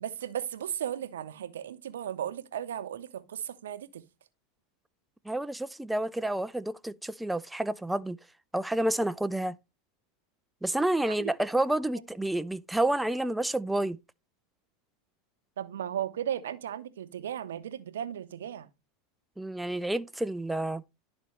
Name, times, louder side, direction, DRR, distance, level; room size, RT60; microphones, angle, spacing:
voice 1, 0.0-4.0 11.2-11.3 15.6-18.7, right 10 dB, 85° right, 0.6 m, -35 dB
voice 2, 5.3-8.2 8.5-9.5 10.6-14.0 19.4-20.8, right 1 dB, 5° right, 0.3 m, -29 dB
11.5 x 4.0 x 3.2 m
hypercardioid pair, 105°, 0 cm